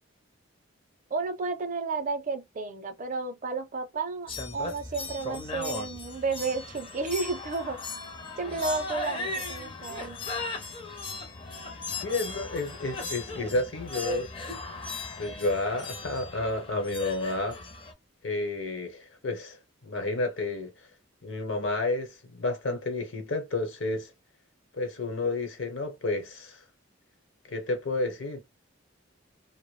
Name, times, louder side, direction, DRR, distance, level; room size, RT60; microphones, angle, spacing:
voice 1, 1.1-7.9 8.4-10.2, right 4 dB, 40° right, 0.5 m, -32 dB
sound 1, 4.3-17.9, left 2 dB, 25° left, 0.5 m, -37 dB
voice 2, 12.0-14.3 15.2-17.6 18.2-20.7 21.2-24.1 24.7-26.6 27.5-28.4, left 2 dB, 70° left, 0.9 m, -31 dB
2.2 x 2.0 x 3.1 m
head